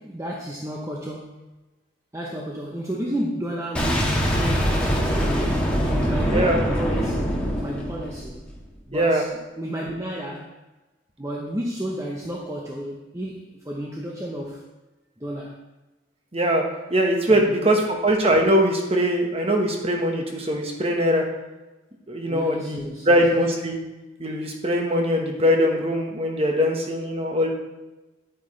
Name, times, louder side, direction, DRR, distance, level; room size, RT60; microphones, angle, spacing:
voice 1, 0.0-1.5 2.1-5.5 5.8-8.4 8.9-9.3 9.6-10.5 11.2-14.6 15.2-15.6 17.3-17.8 22.3-23.2, equal, 15° right, -2 dB, 0.8 m, -32 dB
Boom, 3.8-8.6, equal, 5° left, 1.4 m, -23 dB
voice 2, 8.9-9.2 16.3-16.6 16.9-21.3 22.1-23.8 24.2-27.5, equal, 30° right, 2 dB, 1.3 m, -21 dB
10.0 x 9.2 x 3.2 m, 1.1 s
head